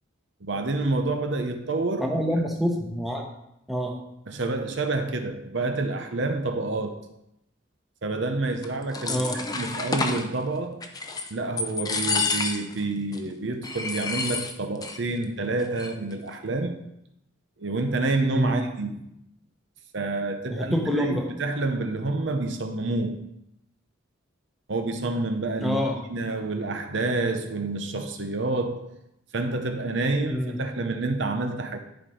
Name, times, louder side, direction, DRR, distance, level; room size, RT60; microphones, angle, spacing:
voice 1, 0.4-2.1 4.3-7.0 8.0-10.8 11.3-16.8 17.6-19.1 19.9-23.2 24.7-25.8 26.1-28.9 29.3-31.8, right 2 dB, 65° right, 6 dB, 0.8 m, -28 dB
voice 2, 2.0-3.3 3.7-3.9 9.1-9.4 18.3-18.6 20.5-21.3 25.6-26.0 30.3-30.6, equal, ahead, 0 dB, 1.1 m, -26 dB
sound 1, 8.6-10.3 10.8-11.3 11.6-12.8 13.1-13.2 13.6-15.0 15.2-15.3 15.6-16.1, left 4 dB, 20° left, 0.6 m, -29 dB
10.5 x 4.3 x 5.0 m, 0.82 s
head